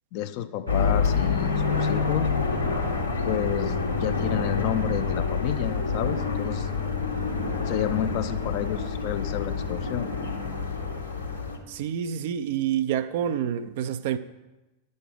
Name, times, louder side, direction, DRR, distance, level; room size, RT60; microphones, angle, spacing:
voice 1, 0.1-2.3 3.2-6.7 7.7-10.1, left 10 dB, 45° left, 0.5 m, -30 dB
sound 1, 0.7-11.6, left 5 dB, 85° left, 1.2 m, -27 dB
voice 2, 11.7-14.2, right 9 dB, 50° right, 0.4 m, -28 dB
9.7 x 6.4 x 4.8 m
figure-of-eight pair, 90°, 0 cm